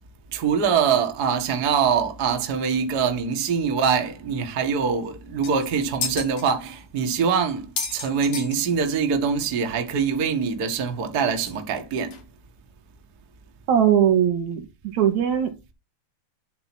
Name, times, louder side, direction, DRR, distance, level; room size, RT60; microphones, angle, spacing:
voice 1, 0.3-12.2, right 6 dB, 80° right, 0.8 m, -24 dB
sound 1, 5.0-5.1 5.4-6.5 7.0-7.1 7.5-9.1 9.4-9.5 9.7-9.8 10.7-10.8 11.5-11.6 12.1-12.2, left 5 dB, 50° left, 3.3 m, -32 dB
voice 2, 13.7-14.7 14.9-15.5, right 9 dB, 65° right, 1.9 m, -19 dB
11.5 x 4.3 x 6.1 m
omnidirectional pair, 4.8 m